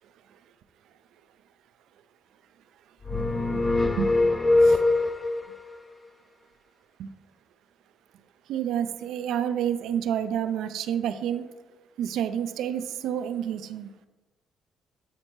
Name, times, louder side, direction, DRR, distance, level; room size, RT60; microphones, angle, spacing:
sound 1, 3.0-5.5, left 2 dB, 20° left, 0.4 m, -22 dB
voice 1, 3.1-4.4 4.6-4.8 7.0-7.1 8.5-11.4 12.0-13.9, right 9 dB, 85° right, 11 dB, 0.4 m, -29 dB
8.0 x 4.2 x 3.0 m, 1.2 s
cardioid pair, 90°, 0 cm